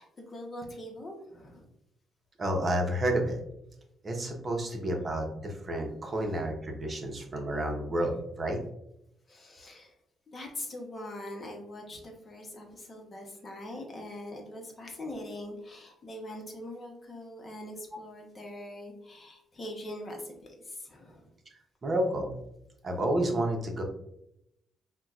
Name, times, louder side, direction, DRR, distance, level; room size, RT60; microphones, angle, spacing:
voice 1, 0.0-1.6 9.3-9.9 10.3-21.3, left 1 dB, 35° left, 1 dB, 0.9 m, -42 dB
voice 2, 2.4-3.4 4.0-8.6 21.8-22.3 22.8-23.8, right 1 dB, 35° right, 2 dB, 0.8 m, -30 dB
5.6 x 2.2 x 2.4 m, 0.78 s
cardioid pair, 90°, 0 cm